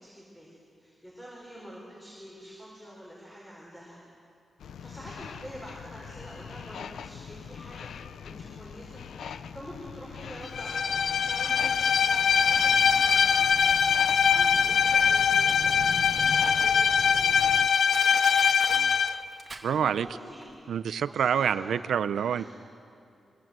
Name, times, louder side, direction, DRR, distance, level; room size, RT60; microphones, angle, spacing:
voice 1, 0.0-4.0 4.8-7.9 8.2-9.0 9.3-13.6 14.0-17.4 18.7-19.0 19.7-20.4 21.1-21.8 22.1-22.5, equal, 5° left, -5 dB, 4.8 m, -46 dB
sound 1, 4.6-17.7, left 7 dB, 85° left, 0.7 m, -41 dB
Bowed string instrument, 10.5-19.2, left 6 dB, 55° left, 0.5 m, -23 dB
Crushing, 16.6-16.7 17.3-17.4 17.9-20.1 20.4-20.5, right 3 dB, 25° right, 2.0 m, -41 dB
voice 2, 19.6-20.1 20.7-22.5, right 8 dB, 85° right, 14 dB, 0.7 m, -27 dB
25.0 x 23.5 x 7.6 m, 2.6 s
wide cardioid pair, 175°, 0 cm